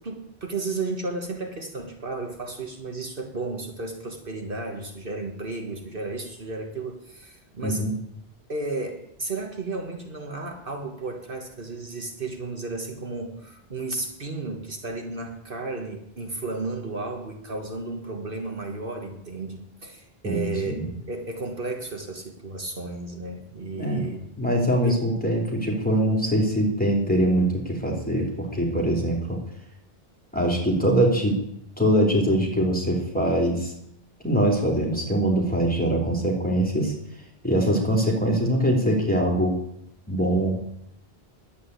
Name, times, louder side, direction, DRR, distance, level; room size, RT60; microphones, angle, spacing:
voice 1, 0.0-7.9 8.5-24.2 24.8-25.0, right 3 dB, 60° right, 3 dB, 1.8 m, -33 dB
voice 2, 7.6-7.9 20.2-20.9 23.8-24.0 24.4-29.4 30.3-31.4 31.8-33.7 34.2-36.9 37.4-39.6 40.1-40.6, right 1 dB, 10° left, -1 dB, 3.3 m, -23 dB
11.0 x 8.7 x 8.2 m, 0.74 s
omnidirectional pair, 1.0 m